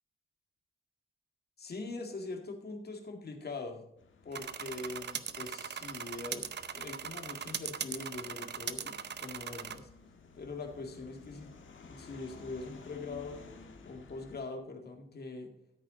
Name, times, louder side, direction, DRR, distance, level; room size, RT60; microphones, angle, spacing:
voice 1, 1.6-3.8 4.2-9.0 9.2-9.9 10.3-13.4 13.8-15.5, left 3 dB, 50° left, 4 dB, 2.1 m, -42 dB
sound 1, 4.0-14.4, left 4 dB, 65° left, 1.6 m, -55 dB
sound 2, 4.3-9.8, right 7 dB, 55° right, 0.7 m, -40 dB
13.5 x 8.4 x 3.9 m, 0.76 s
wide cardioid pair, 135°, 21 cm